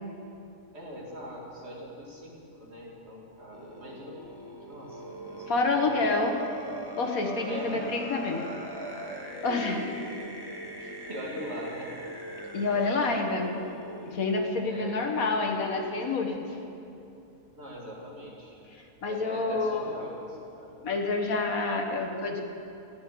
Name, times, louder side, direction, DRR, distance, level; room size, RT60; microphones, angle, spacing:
voice 1, 0.7-4.1 4.6-5.9 7.5-7.9 9.4-9.8 10.8-11.9 14.7-15.4 17.5-18.6 19.0-20.8, equal, 45° right, -3 dB, 2.4 m, -41 dB
sound 1, 3.5-14.1, right 1 dB, 15° right, 1.3 m, -41 dB
voice 2, 5.5-6.4 7.0-8.5 9.4-9.8 12.5-13.5 14.1-16.4 18.7-19.9 20.8-22.4, left 3 dB, 65° left, 3 dB, 1.6 m, -28 dB
15.0 x 9.9 x 6.7 m, 2.8 s
omnidirectional pair, 1.6 m